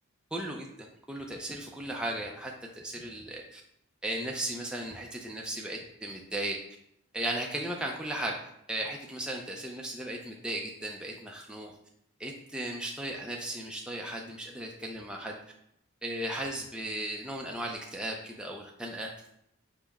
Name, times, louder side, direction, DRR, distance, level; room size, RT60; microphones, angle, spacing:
voice 1, 0.3-0.7 1.1-3.6 4.0-6.6 7.1-8.3 8.7-11.7 12.2-15.4 16.0-19.1, right 1 dB, 5° right, -1 dB, 0.3 m, -36 dB
5.5 x 2.0 x 4.6 m, 0.75 s
head